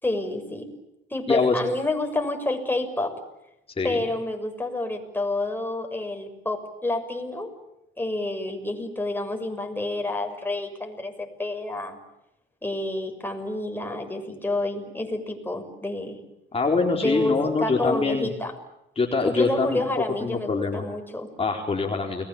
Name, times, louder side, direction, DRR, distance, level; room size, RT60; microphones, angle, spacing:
voice 1, 0.0-0.7 1.1-3.2 3.8-7.5 8.0-12.0 12.6-16.2 17.0-18.5 19.2-21.3, left 2 dB, 10° left, 4 dB, 6.6 m, -29 dB
voice 2, 1.3-1.6 3.8-4.0 16.5-18.3 19.0-19.8 20.2-20.8 21.4-22.3, left 4 dB, 30° left, 1 dB, 4.3 m, -24 dB
30.0 x 21.0 x 8.7 m, 0.88 s
cardioid pair, 90°, 20 cm